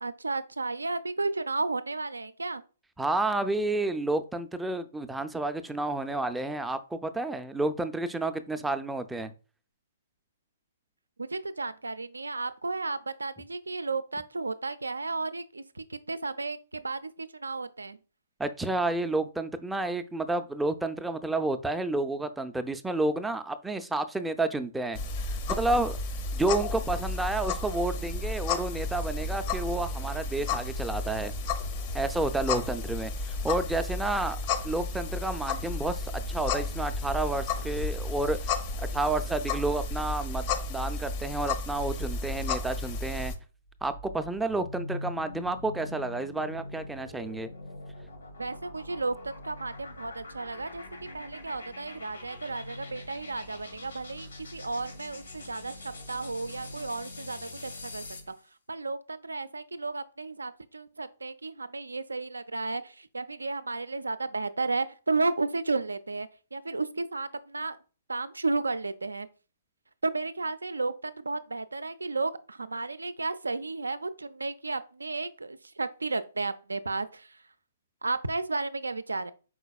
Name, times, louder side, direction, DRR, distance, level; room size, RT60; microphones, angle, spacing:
voice 1, 0.0-2.6 11.2-18.0 48.4-50.8 51.1-58.0 58.7-67.8 68.1-69.3 70.0-77.3 78.0-79.3, right 3 dB, 90° right, 0.4 m, -33 dB
voice 2, 3.0-9.3 18.4-25.0 25.5-26.0 26.3-31.3 31.9-34.4 34.6-43.3 43.8-47.5, right 2 dB, 5° right, 0.4 m, -30 dB
sound 1, 24.9-43.3, left 3 dB, 40° left, 0.6 m, -32 dB
sound 2, 43.6-58.4, left 2 dB, 90° left, 1.7 m, -43 dB
4.9 x 4.0 x 2.3 m
hypercardioid pair, 130°, 0 cm